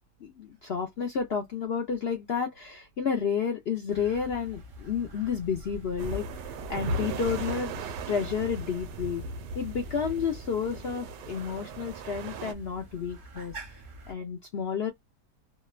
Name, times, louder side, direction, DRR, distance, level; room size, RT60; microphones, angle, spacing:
voice 1, 0.2-9.2 9.5-13.6 14.1-14.9, left 6 dB, 75° left, 0.5 m, -31 dB
sound 1, 3.9-14.1, equal, 50° right, 0.6 m, -46 dB
sound 2, 6.0-12.5, right 3 dB, 90° right, 1.3 m, -37 dB
2.9 x 2.1 x 2.3 m
omnidirectional pair, 1.8 m